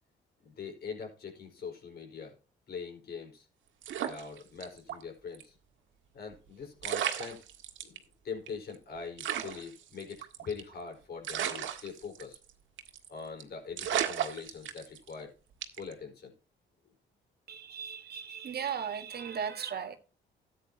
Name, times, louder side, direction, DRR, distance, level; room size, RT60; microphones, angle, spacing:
voice 1, 0.4-2.4 2.7-3.5 4.0-5.6 6.1-7.4 7.8-8.0 8.2-12.4 13.1-15.3 15.8-16.3, left 5 dB, 55° left, 4.8 m, -42 dB
sound 1, 3.8-5.0 5.3-5.4 6.5-6.6 6.8-8.0 8.5-8.6 8.7-8.8 9.2-10.7 11.2-12.5 12.8-13.1 13.4-13.5 13.8-15.1 15.6-15.9, right 10 dB, 75° right, 1.8 m, -34 dB
voice 2, 17.5-20.0, right 7 dB, 55° right, 1.7 m, -37 dB
13.5 x 9.3 x 2.9 m
cardioid pair, 90°, 20 cm